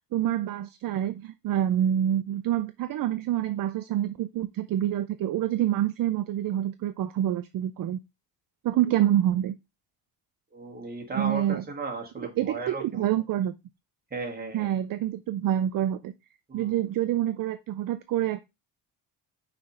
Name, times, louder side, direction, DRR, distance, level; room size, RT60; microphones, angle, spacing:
voice 1, 0.1-8.0 8.6-9.5 11.1-11.6 12.4-13.5 14.5-16.1 16.5-18.4, right 11 dB, 50° right, 0.5 m, -27 dB
voice 2, 10.5-13.1 14.1-14.7 16.5-16.8, right 3 dB, 20° right, 2.0 m, -36 dB
5.9 x 3.4 x 5.3 m
cardioid pair, 140°, 42 cm